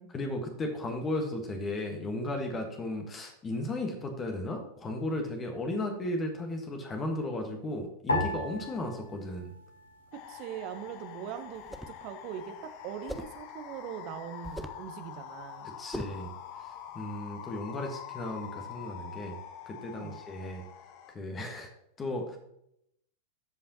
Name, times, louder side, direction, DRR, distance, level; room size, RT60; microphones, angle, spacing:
voice 1, 0.1-9.5 15.8-16.3 16.9-19.4 19.7-20.6 21.1-21.7 22.0-22.4, left 1 dB, 20° left, 4 dB, 1.4 m, -35 dB
sound 1, 8.1-10.6 10.9-11.8 12.4-12.8, left 1 dB, 80° left, 1.7 m, -36 dB
sound 2, 10.1-21.1, left 10 dB, 45° left, 0.9 m, -45 dB
voice 2, 10.3-15.7 20.0-20.1, right 9 dB, 40° right, 9 dB, 0.9 m, -41 dB
sound 3, 11.5-12.0 13.1-13.4 14.4-14.9 15.9-16.3, right 1 dB, ahead, 0.5 m, -40 dB
14.0 x 5.5 x 2.9 m, 0.77 s
figure-of-eight pair, 90°, 0 cm